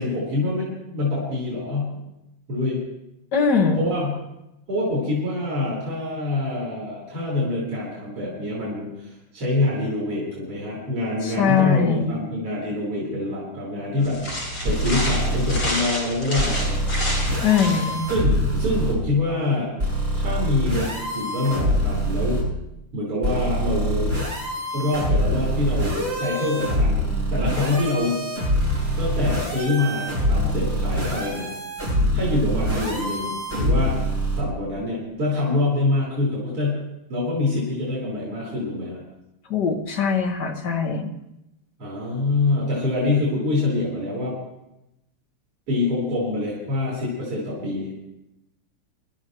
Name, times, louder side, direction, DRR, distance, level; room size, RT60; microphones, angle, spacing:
voice 1, 0.0-2.0 2.5-2.8 3.8-4.2 4.7-16.8 18.1-19.7 20.1-22.4 22.9-24.1 24.7-27.0 27.3-28.2 29.0-31.5 32.1-34.1 34.4-36.8 37.1-39.0 41.8-44.3 45.7-47.9, left 2 dB, 85° right, -5 dB, 5.2 m, -25 dB
voice 2, 3.3-3.9 11.2-12.1 17.4-18.1 39.4-41.1, left 6 dB, 50° left, 2 dB, 2.0 m, -21 dB
sound 1, 14.0-18.1, equal, 75° left, 6.4 m, -29 dB
sound 2, 14.6-15.6 16.4-18.9 19.8-22.4 23.2-34.4, equal, 25° right, 7.7 m, -24 dB
25.5 x 12.5 x 3.1 m, 0.86 s
omnidirectional pair, 2.4 m